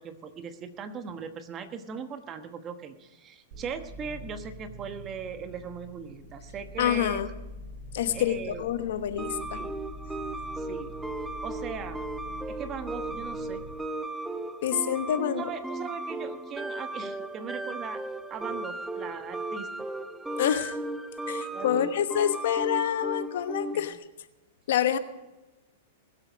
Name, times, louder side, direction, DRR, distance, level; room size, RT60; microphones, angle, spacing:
voice 1, 0.0-7.2 8.1-8.6 9.5-9.8 10.6-11.0 11.4-12.0 12.5-13.6 15.4-18.0 18.3-19.7 21.5-21.9 23.7-23.9, right 6 dB, 25° right, 9 dB, 1.1 m, -39 dB
sound 1, 3.5-13.7, left 1 dB, 55° right, 3.4 m, -44 dB
voice 2, 6.8-7.3 7.9-9.7 14.6-15.4 20.4-20.8 21.3-24.0 24.7-25.0, left 10 dB, 70° left, 11 dB, 1.1 m, -27 dB
sound 2, 9.2-23.9, right 2 dB, 5° right, 0.7 m, -36 dB
20.5 x 8.2 x 5.1 m, 1.1 s
hypercardioid pair, 140°, 0 cm